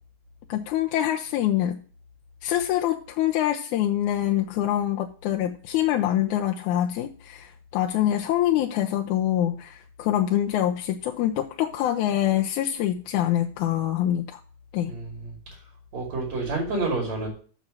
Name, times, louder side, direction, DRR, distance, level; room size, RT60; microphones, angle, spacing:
voice 1, 0.5-1.8 2.4-14.4 14.7-14.9, left 12 dB, 85° left, 3 dB, 2.1 m, -25 dB
voice 2, 14.9-15.3 15.9-17.3, right 3 dB, 60° right, 0 dB, 3.7 m, -29 dB
7.3 x 6.8 x 6.2 m, 0.42 s
omnidirectional pair, 3.5 m